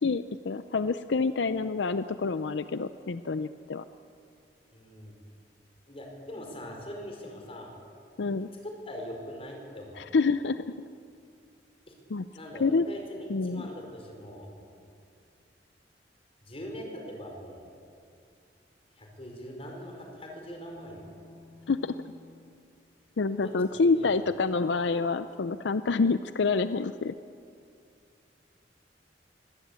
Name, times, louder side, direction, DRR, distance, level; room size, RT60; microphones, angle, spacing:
voice 1, 0.0-3.8 8.2-8.5 10.0-10.6 12.1-12.2 12.6-12.9 13.3-13.7 21.7-21.9 23.2-27.1, left 4 dB, 80° left, 12 dB, 0.5 m, -27 dB
voice 2, 4.7-5.1 5.9-7.7 8.8-10.0 11.9-12.0 12.3-14.5 16.4-17.7 19.0-21.0 23.4-23.5 23.8-24.1, equal, 35° left, 1 dB, 5.0 m, -42 dB
sound 1, 20.3-22.6, left 2 dB, ahead, 6.0 m, -53 dB
23.5 x 17.5 x 8.3 m, 2.4 s
head